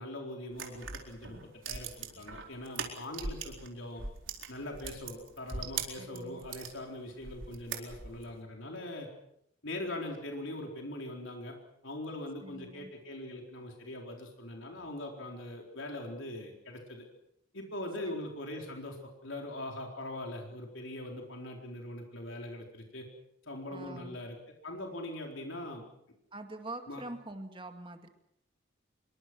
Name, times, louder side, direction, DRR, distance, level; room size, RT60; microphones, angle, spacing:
voice 1, 0.0-1.4 1.7-4.0 4.5-9.1 9.6-11.5 11.8-17.0 17.5-23.1 23.4-24.4 24.6-25.8 26.9-27.0, left 1 dB, 70° left, 1 dB, 4.2 m, -41 dB
sound 1, 0.5-3.7 4.0-6.7 7.2-8.3, right 6 dB, 70° right, 4.2 m, -40 dB
voice 2, 6.0-6.5 12.4-12.9 18.0-18.1 23.7-24.2 26.3-28.1, right 2 dB, 25° right, 6 dB, 2.2 m, -44 dB
26.0 x 23.5 x 6.2 m, 0.78 s
head